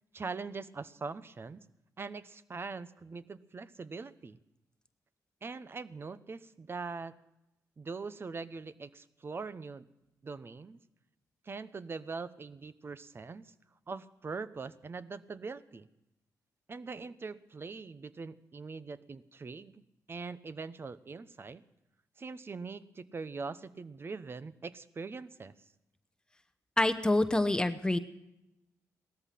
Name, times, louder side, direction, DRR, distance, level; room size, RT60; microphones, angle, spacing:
voice 1, 0.1-1.6 2.0-4.4 5.4-7.1 7.8-9.9 10.2-10.8 11.4-13.5 13.9-15.9 16.7-19.8 20.1-21.6 22.2-25.5, right 4 dB, 40° right, 15 dB, 0.9 m, -42 dB
voice 2, 26.8-28.0, left 1 dB, 15° left, 8 dB, 0.9 m, -26 dB
18.0 x 13.5 x 5.8 m, 0.88 s
cardioid pair, 85°, 6 cm